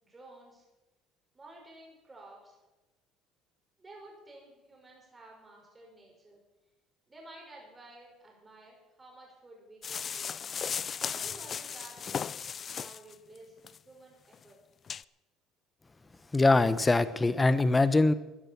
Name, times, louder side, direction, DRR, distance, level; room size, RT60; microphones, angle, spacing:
voice 1, 0.0-0.6 1.3-2.6 3.8-6.4 7.1-10.4 10.9-13.6 13.8-14.6, right 2 dB, 20° right, -1 dB, 5.9 m, -53 dB
sound 1, 9.8-13.1 13.6-13.8 14.3-14.4 14.9-15.0, left 7 dB, 40° left, 0.4 m, -36 dB
voice 2, 16.3-18.1, left 2 dB, 20° left, 14 dB, 1.1 m, -23 dB
15.0 x 10.0 x 7.2 m, 1.1 s
supercardioid pair, 80°, 0 cm